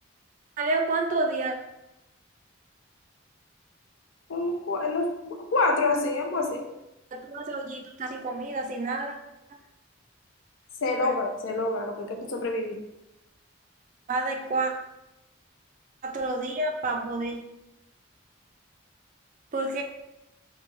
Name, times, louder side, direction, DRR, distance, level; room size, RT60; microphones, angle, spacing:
voice 1, 0.6-1.5 7.1-9.1 11.0-11.1 14.1-14.7 16.0-17.4 19.5-19.8, right 2 dB, 40° right, 3 dB, 0.4 m, -29 dB
voice 2, 4.3-6.6 10.8-12.8, left 2 dB, 75° left, 3 dB, 0.4 m, -27 dB
2.7 x 2.2 x 2.9 m, 0.89 s
head